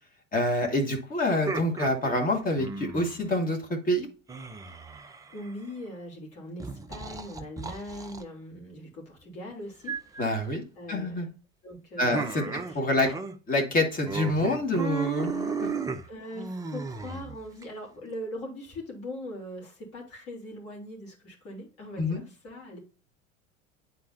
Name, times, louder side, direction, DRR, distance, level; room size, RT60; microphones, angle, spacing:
voice 1, 0.3-4.1 10.2-10.6 10.9-11.3 12.0-12.4 12.8-13.1 13.5-15.8 22.0-22.2, left 1 dB, 20° left, 2 dB, 2.1 m, -27 dB
sound 1, 1.2-3.2 4.3-5.7 6.6-8.2 9.9-10.3 12.1-13.4 13.6-13.8 14.0-17.6, right 5 dB, 10° right, 0.5 m, -34 dB
voice 2, 5.3-10.2 10.7-11.2 11.6-13.1 16.1-22.8, left 1 dB, 40° left, -1 dB, 3.3 m, -41 dB
10.5 x 4.2 x 2.7 m, 0.36 s
figure-of-eight pair, 80°, 38 cm